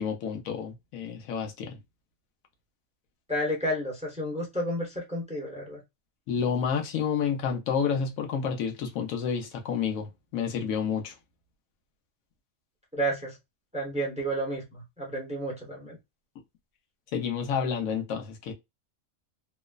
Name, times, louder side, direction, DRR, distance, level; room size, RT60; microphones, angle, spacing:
voice 1, 0.0-1.8 6.3-11.1 17.1-18.5, left 7 dB, 90° left, 1.1 m, -29 dB
voice 2, 3.3-5.8 12.9-13.4 13.7-16.0, right 1 dB, 5° right, 0.7 m, -31 dB
3.0 x 2.0 x 2.3 m
omnidirectional pair, 1.4 m